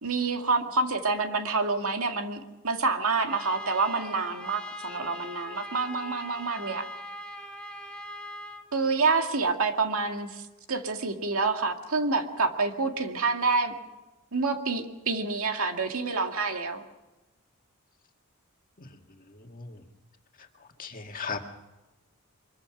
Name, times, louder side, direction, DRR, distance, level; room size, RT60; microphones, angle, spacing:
voice 1, 0.0-6.9 8.7-10.4 10.7-13.7 14.3-16.8, right 4 dB, 70° right, 4 dB, 2.2 m, -27 dB
Trumpet, 3.3-8.6, left 1 dB, 5° left, 1.6 m, -41 dB
voice 2, 19.4-19.8 20.8-21.5, left 5 dB, 40° left, 3 dB, 1.9 m, -37 dB
24.5 x 22.5 x 6.1 m, 1.1 s
head